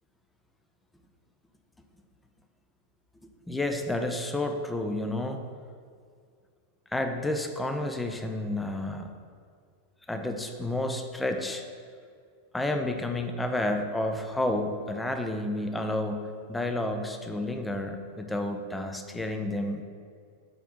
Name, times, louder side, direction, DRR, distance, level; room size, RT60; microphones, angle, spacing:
voice 1, 3.5-5.4 6.9-9.1 10.1-11.6 12.5-19.8, left 1 dB, 5° left, 5 dB, 0.6 m, -30 dB
5.6 x 4.2 x 5.8 m, 2.2 s
figure-of-eight pair, 90°, 0 cm